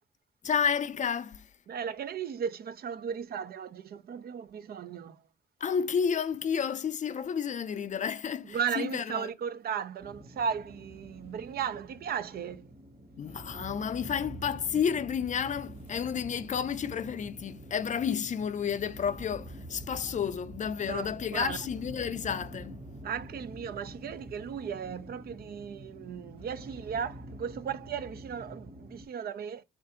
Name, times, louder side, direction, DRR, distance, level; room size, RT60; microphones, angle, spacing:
voice 1, 0.4-1.4 5.6-9.3 13.2-22.8, left 7 dB, 45° left, 0.4 m, -31 dB
voice 2, 1.7-5.2 8.5-12.6 20.9-21.6 23.0-29.6, right 7 dB, 65° right, 0.5 m, -36 dB
sound 1, 10.0-29.1, right 1 dB, 35° right, 1.2 m, -46 dB
3.4 x 2.5 x 4.3 m
cardioid pair, 95°, 17 cm